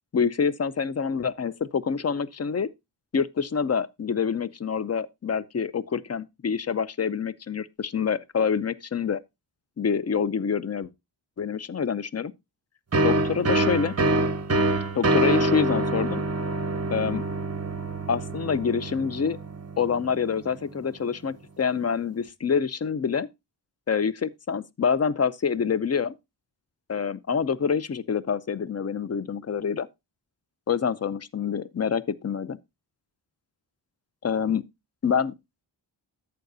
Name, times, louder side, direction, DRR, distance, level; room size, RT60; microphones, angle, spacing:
voice 1, 0.1-2.7 3.1-9.2 9.8-10.9 11.4-12.3 13.0-13.9 14.9-16.2 16.9-17.2 18.1-19.4 19.8-23.3 23.9-26.1 26.9-29.9 30.7-32.6 34.2-34.6 35.0-35.3, left 6 dB, 35° left, 0.6 m, -26 dB
sound 1, 12.9-20.4, right 2 dB, 35° right, 0.9 m, -26 dB
11.5 x 7.8 x 2.6 m
wide cardioid pair, 110°, 43 cm